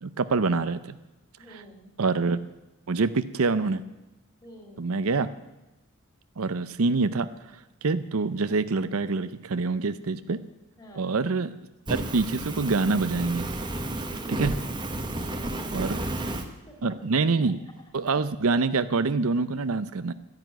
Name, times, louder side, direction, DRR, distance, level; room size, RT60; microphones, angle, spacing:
voice 1, 0.0-1.0 2.0-2.4 2.9-3.8 4.8-5.3 6.4-7.3 7.8-10.4 10.9-11.6 11.9-13.5 14.3-14.6 15.7-16.0 16.8-17.6 17.9-20.1, right 4 dB, 70° right, 13 dB, 0.7 m, -25 dB
voice 2, 1.4-1.9 4.4-4.9 10.8-11.3 14.2-14.6 15.1-17.1 17.4-17.5, equal, 20° left, 2 dB, 3.8 m, -48 dB
Fire, 11.9-16.5, right 1 dB, 20° right, 1.2 m, -32 dB
13.5 x 10.5 x 9.1 m, 1.0 s
head